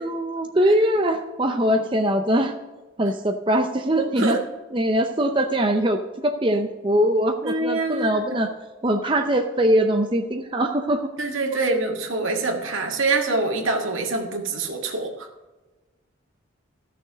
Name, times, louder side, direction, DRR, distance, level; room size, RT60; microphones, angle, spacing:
voice 1, 0.0-2.5 3.0-4.4 4.7-8.5 8.8-11.1, right 1 dB, 25° right, 4 dB, 0.6 m, -22 dB
voice 2, 7.4-8.4 11.2-15.1, right 3 dB, 75° right, 2 dB, 1.9 m, -25 dB
14.5 x 6.7 x 5.0 m, 1.2 s
head